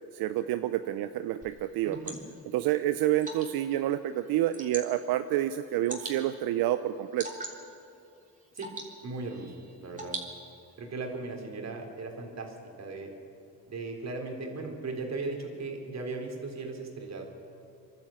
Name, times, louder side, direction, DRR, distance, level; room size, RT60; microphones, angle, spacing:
voice 1, 0.1-2.0 2.5-7.3, right 13 dB, 85° right, 11 dB, 0.7 m, -28 dB
Water / Drip, 1.4-10.8, right 2 dB, 20° right, 3.5 m, -45 dB
voice 2, 1.8-2.2 8.5-8.7 9.0-10.2 10.8-13.1 13.7-17.2, right 3 dB, 45° right, 2 dB, 3.8 m, -37 dB
24.5 x 12.0 x 8.7 m, 2.6 s
cardioid pair, 90°, 35 cm